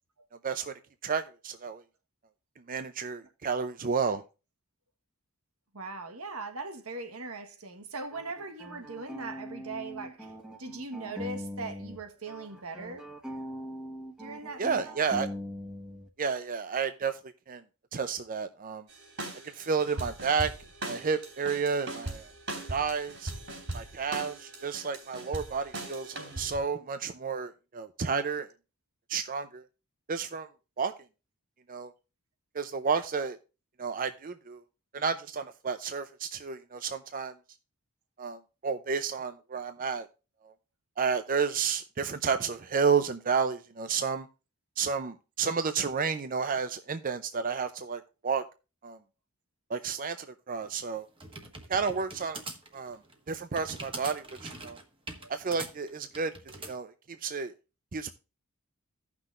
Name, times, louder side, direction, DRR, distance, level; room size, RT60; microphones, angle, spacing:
voice 1, 1.0-1.8 2.7-4.2 14.6-15.3 16.2-17.2 17.5-17.6 17.9-18.9 19.5-20.5 20.8-22.3 22.7-23.3 23.7-28.5 29.1-29.6 30.1-30.5 30.8-30.9 31.7-31.9 32.5-33.4 33.8-34.6 34.9-37.3 38.2-40.1 40.4-40.5 41.0-44.3 44.8-48.4 48.8-49.0 49.7-51.1 51.7-52.4 52.7-53.0 53.3-54.8 55.3-56.3 56.7-57.5 57.9-58.1, right 5 dB, 40° right, 0.6 m, -31 dB
voice 2, 5.7-10.3 10.6-13.1 14.2-15.0 55.2-55.3, right 3 dB, 90° right, 1.4 m, -40 dB
sound 1, 8.1-12.0 12.3-16.1, equal, 5° right, 1.3 m, -41 dB
sound 2, 18.9-26.6, right 2 dB, 60° right, 3.9 m, -40 dB
sound 3, 50.6-56.7, right 3 dB, 25° right, 1.4 m, -43 dB
16.0 x 6.0 x 2.5 m
head